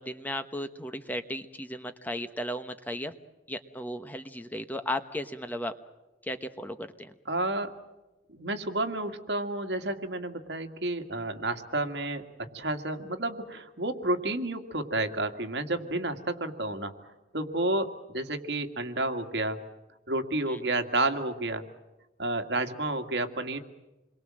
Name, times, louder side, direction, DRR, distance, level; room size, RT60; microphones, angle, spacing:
voice 1, 0.0-3.1 3.5-5.7 6.2-7.1 20.5-20.6, left 1 dB, 10° left, 9 dB, 1.1 m, -35 dB
voice 2, 7.3-7.7 8.3-16.9 17.3-19.6 20.1-21.6 22.2-23.6, right 2 dB, 65° right, 6 dB, 2.2 m, -30 dB
28.0 x 23.0 x 7.7 m, 1.0 s
head